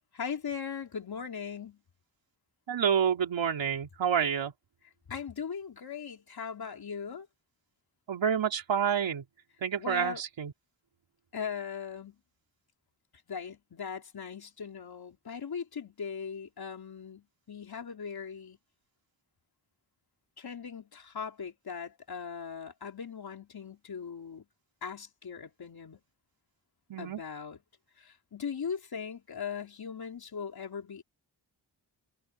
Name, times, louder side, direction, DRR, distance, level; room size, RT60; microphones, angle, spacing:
voice 1, 0.1-1.8 5.1-7.3 9.8-10.2 11.3-12.2 13.3-18.6 20.4-24.4 24.8-26.0 27.0-27.6 28.0-31.0, left 6 dB, 55° left, 3.7 m, -39 dB
voice 2, 2.7-4.5 8.1-9.2 9.6-10.5 26.9-27.2, right 8 dB, 85° right, 3.7 m, -28 dB
wide cardioid pair, 130°, 44 cm